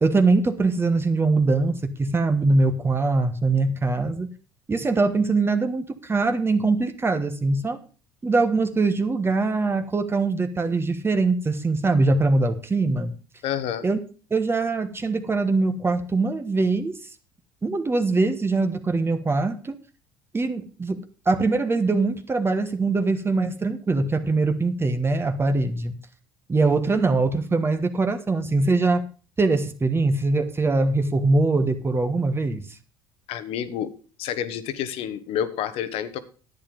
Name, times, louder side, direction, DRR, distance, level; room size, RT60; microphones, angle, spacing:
voice 1, 0.0-4.3 4.7-7.8 8.2-13.1 13.8-14.0 14.3-17.0 17.6-19.8 20.3-21.0 21.2-25.9 26.5-29.0 29.4-32.7, right 3 dB, 20° right, 8 dB, 1.3 m, -22 dB
voice 2, 13.4-13.8 33.3-33.9 34.2-36.2, left 9 dB, 65° left, 13 dB, 1.2 m, -29 dB
10.5 x 8.8 x 5.2 m, 0.37 s
hypercardioid pair, 70°, 11 cm